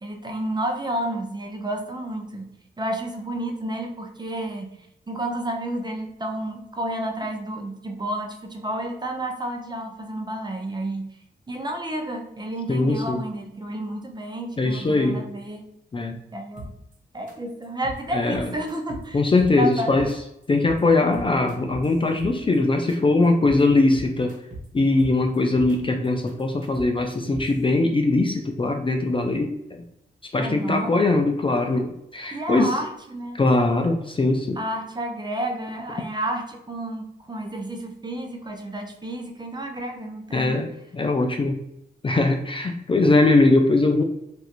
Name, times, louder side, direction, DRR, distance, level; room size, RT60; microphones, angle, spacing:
voice 1, 0.0-2.5 2.8-4.7 5.1-11.1 11.5-15.6 16.3-16.7 17.1-19.2 19.5-20.0 30.4-30.9 32.3-33.4 34.6-40.6, right 1 dB, 25° right, 3 dB, 0.6 m, -31 dB
voice 2, 12.7-13.2 14.6-15.3 15.9-16.2 18.1-18.5 19.1-20.1 20.5-24.4 24.7-29.8 30.3-32.8 33.4-34.6 40.3-41.6 42.0-44.0, left 2 dB, 30° left, 4 dB, 0.4 m, -21 dB
sound 1, 16.6-16.9 17.3-17.4 17.6-18.0 18.3-19.1 19.4-20.1 20.4-20.8 21.1-22.6 22.9-23.0 23.2-23.6 23.9-24.7 25.0-25.8 26.0-27.6, right 1 dB, 45° right, 1.2 m, -38 dB
3.1 x 2.5 x 2.9 m, 0.83 s
cardioid pair, 65°, 18 cm